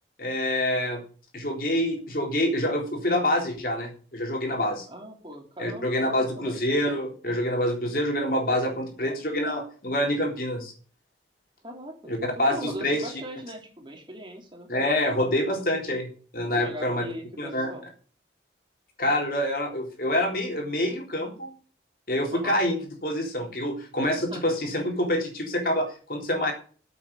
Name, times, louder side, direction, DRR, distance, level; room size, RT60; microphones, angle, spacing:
voice 1, 0.2-1.0 1.3-4.9 5.6-10.7 12.1-13.1 14.7-16.1 16.3-17.0 17.4-17.7 19.0-21.5 22.1-26.5, left 1 dB, 50° left, 2 dB, 3.9 m, -26 dB
voice 2, 4.9-6.7 11.6-14.7 16.5-17.8 22.3-22.6 24.3-24.6, equal, 25° right, 2 dB, 3.3 m, -40 dB
9.5 x 8.1 x 8.4 m, 0.41 s
head